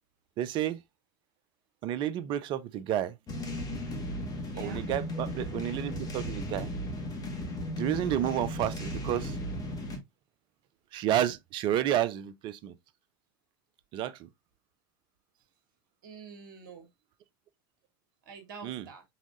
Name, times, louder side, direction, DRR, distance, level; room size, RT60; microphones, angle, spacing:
voice 1, 0.4-0.8 1.8-3.1 4.6-6.7 7.8-9.3 10.9-12.7 13.9-14.2 18.6-18.8, right 11 dB, 45° right, 0.6 m, -30 dB
sound 1, 3.3-10.0, left 1 dB, 35° left, 2.0 m, -36 dB
voice 2, 4.1-4.8 16.0-16.9 18.2-19.0, right 5 dB, 65° right, 1.6 m, -48 dB
5.7 x 3.6 x 2.6 m
hypercardioid pair, 85°, 12 cm